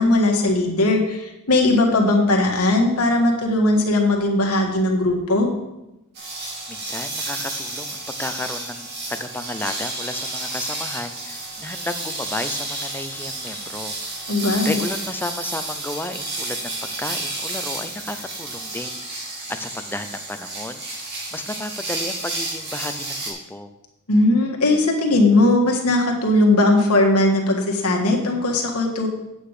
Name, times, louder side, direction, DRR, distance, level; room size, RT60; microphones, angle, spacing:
voice 1, 0.0-5.5 14.3-14.8 24.1-29.1, left 2 dB, 80° left, 1 dB, 1.6 m, -18 dB
sound 1, 6.1-23.3, right 2 dB, 50° right, 2.3 m, -31 dB
voice 2, 6.7-14.3 14.6-23.7, left 2 dB, 10° left, 8 dB, 0.6 m, -33 dB
8.5 x 8.0 x 4.9 m, 0.93 s
head